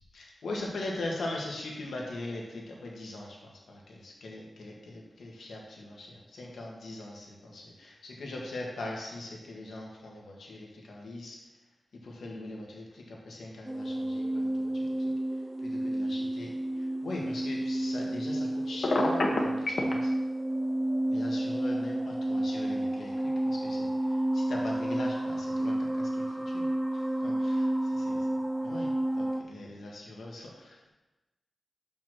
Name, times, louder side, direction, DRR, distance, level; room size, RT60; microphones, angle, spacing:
voice 1, 0.1-11.4 12.0-14.9 15.6-20.1 21.1-26.7 27.2-27.7 28.1-28.2 28.6-28.9 29.2-30.9, left 2 dB, 90° left, -2 dB, 1.7 m, -41 dB
sound 1, 13.7-29.4, right 1 dB, 5° right, 0.6 m, -31 dB
Telephone, 18.8-19.9, left 2 dB, 55° left, 1.2 m, -26 dB
6.1 x 5.7 x 6.1 m, 1.1 s
wide cardioid pair, 90°, 0 cm